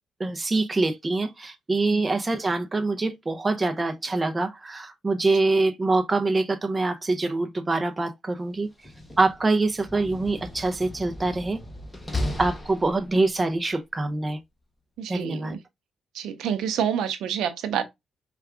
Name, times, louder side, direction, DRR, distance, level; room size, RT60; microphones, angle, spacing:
voice 1, 0.2-8.7 9.2-11.6 12.4-14.4 15.1-15.5, right 3 dB, 25° right, 0.6 m, -25 dB
Slam, 8.7-13.4, left 1 dB, 10° left, 0.9 m, -35 dB
voice 2, 15.0-15.6 16.1-17.8, right 8 dB, 80° right, 0.7 m, -28 dB
4.5 x 2.4 x 3.4 m
cardioid pair, 90°, 0 cm